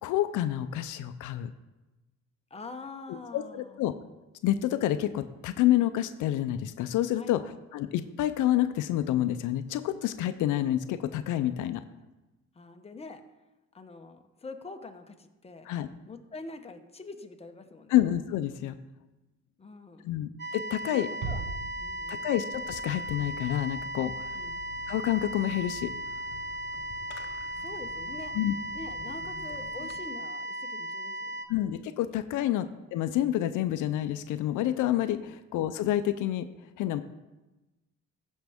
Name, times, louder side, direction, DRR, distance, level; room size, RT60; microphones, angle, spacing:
voice 1, 0.0-1.5 3.1-3.9 4.4-7.4 7.7-11.8 15.7-15.9 17.9-18.8 20.0-21.1 22.1-24.4 24.9-25.9 28.3-28.5 31.5-36.5 36.8-37.0, left 13 dB, 85° left, 11 dB, 0.5 m, -28 dB
voice 2, 2.5-3.8 7.1-7.4 12.5-13.2 13.7-15.7 16.1-18.0 19.6-20.0 20.8-22.3 24.3-24.5 27.6-28.4 28.7-31.4 32.4-32.6 35.2-35.4, left 3 dB, 20° left, 5 dB, 0.9 m, -45 dB
sound 1, 20.4-31.5, right 1 dB, 35° right, 0.8 m, -37 dB
Bass drum, 21.2-22.6, right 4 dB, 85° right, 1.5 m, -38 dB
Fireworks, 22.5-30.0, left 6 dB, 55° left, 0.9 m, -49 dB
15.0 x 5.3 x 3.5 m, 1.1 s
cardioid pair, 90°, 30 cm